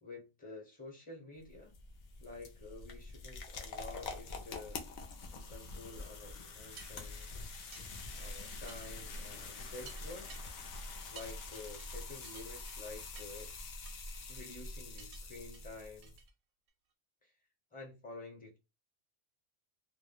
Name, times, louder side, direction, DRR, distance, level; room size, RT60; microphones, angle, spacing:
voice 1, 0.0-1.7 2.2-4.8 5.3-7.5 8.2-10.3 11.1-13.6 14.3-16.1 17.2-17.3 17.7-18.6, left 3 dB, 10° left, 0.6 m, -50 dB
sound 1, 1.4-16.2, left 3 dB, 65° left, 0.4 m, -46 dB
sound 2, 6.0-6.1 6.8-7.3 7.7-7.9 8.7-8.9 9.3-9.4 9.8-10.4 11.2-11.3 11.8-11.9 12.2-12.8 13.2-13.4 13.9-14.3 15.0-15.2 15.5-15.7 16.0-16.3 16.7-16.8, right 7 dB, 85° right, 0.9 m, -55 dB
2.2 x 2.1 x 2.9 m
omnidirectional pair, 1.3 m